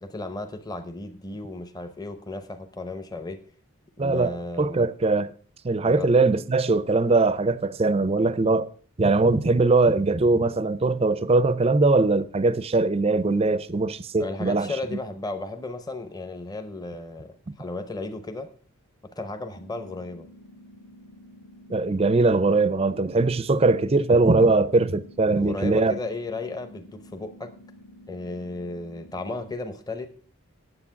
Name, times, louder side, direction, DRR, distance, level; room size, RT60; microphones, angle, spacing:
voice 1, 0.0-3.4 4.0-4.9 5.8-6.1 14.2-18.5 19.1-20.3 25.3-27.5 28.1-30.1, left 2 dB, 15° left, 0.7 m, -34 dB
voice 2, 4.0-5.3 5.6-8.7 9.0-14.7 17.5-17.6 21.7-26.0, right 3 dB, 25° right, 0.4 m, -21 dB
sound 1, 19.5-29.5, left 1 dB, 45° left, 1.0 m, -50 dB
9.8 x 7.6 x 5.8 m
head